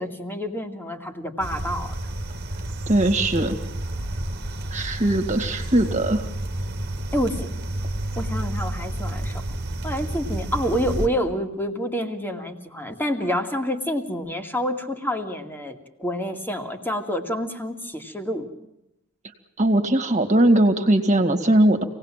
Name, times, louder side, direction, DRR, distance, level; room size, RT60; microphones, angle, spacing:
voice 1, 0.0-1.9 7.1-7.5 8.2-9.4 9.8-18.5, equal, 10° left, 5 dB, 2.2 m, -28 dB
sound 1, 1.4-11.1, right 1 dB, 55° right, 1.8 m, -30 dB
voice 2, 2.9-3.5 4.7-6.3 19.6-21.8, right 1 dB, 35° right, 5 dB, 2.3 m, -20 dB
26.5 x 18.5 x 7.6 m, 0.84 s
head